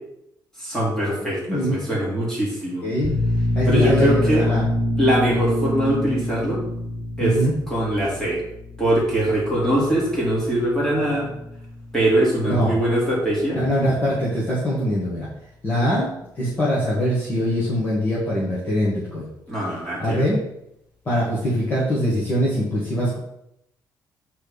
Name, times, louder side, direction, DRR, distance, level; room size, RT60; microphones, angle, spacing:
voice 1, 0.6-2.9 3.6-4.4 5.0-6.6 7.2-7.4 7.7-8.4 8.8-11.3 11.9-13.6 19.5-20.2, right 1 dB, 5° left, -6 dB, 3.1 m, -22 dB
voice 2, 1.5-1.9 2.8-3.1 3.6-4.7 7.2-7.5 12.5-12.7 13.5-15.3 15.6-16.1 16.4-19.3 20.0-20.4 21.1-23.2, equal, 25° left, -7 dB, 1.8 m, -22 dB
sound 1, 3.0-14.3, left 1 dB, 15° right, 0.9 m, -27 dB
8.0 x 4.5 x 5.2 m, 0.79 s
cardioid pair, 175°, 8 cm